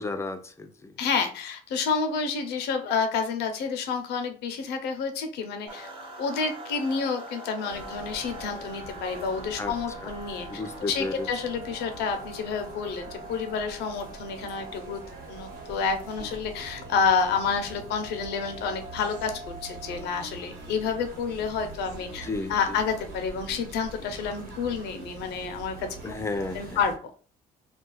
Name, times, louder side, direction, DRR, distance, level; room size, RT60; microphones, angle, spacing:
voice 1, 0.0-0.9 9.6-9.7 10.0-10.1 10.5-11.3 22.2-22.8 26.0-26.8, left 3 dB, 15° left, 0.5 m, -33 dB
voice 2, 1.0-5.9 6.2-15.0 15.3-26.1 26.5-26.9, left 5 dB, 80° left, 0.7 m, -29 dB
sound 1, 5.7-20.2, right 2 dB, 30° right, 1.0 m, -44 dB
sound 2, 7.7-27.0, right 3 dB, 60° right, 1.1 m, -45 dB
Human voice, 16.1-25.6, right 2 dB, 90° right, 1.2 m, -48 dB
2.4 x 2.3 x 3.9 m
cardioid pair, 110°, 17 cm